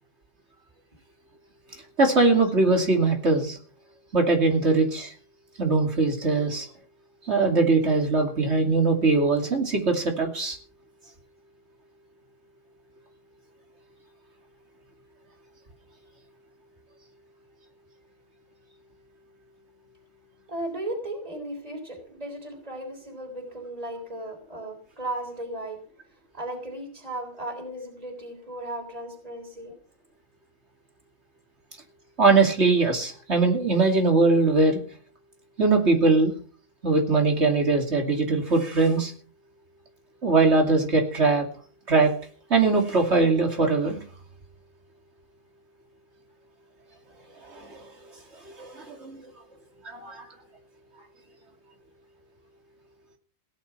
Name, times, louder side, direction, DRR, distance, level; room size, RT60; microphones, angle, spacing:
voice 1, 2.0-3.6 4.1-5.1 5.6-6.7 7.2-10.6 32.2-34.8 35.6-36.3 36.8-39.1 40.2-41.4 41.9-42.1 42.5-44.0 47.5-47.8 48.4-49.2 49.8-50.2, right 3 dB, 75° right, 2 dB, 3.1 m, -21 dB
voice 2, 20.5-25.8 26.3-29.7, right 1 dB, 35° right, 1 dB, 3.8 m, -36 dB
17.0 x 10.5 x 5.8 m, 0.43 s
omnidirectional pair, 1.1 m